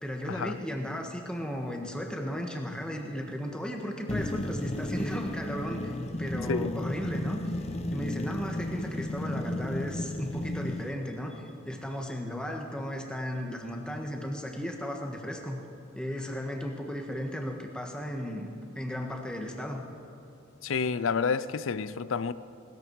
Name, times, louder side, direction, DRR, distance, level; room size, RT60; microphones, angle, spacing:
voice 1, 0.0-7.4 7.9-15.6 15.9-19.8, equal, 5° left, 1.4 m, -35 dB
sound 1, 4.1-10.9, left 1 dB, 30° left, 0.8 m, -34 dB
voice 2, 20.6-22.3, left 5 dB, 80° left, 0.5 m, -29 dB
19.0 x 13.5 x 4.7 m
head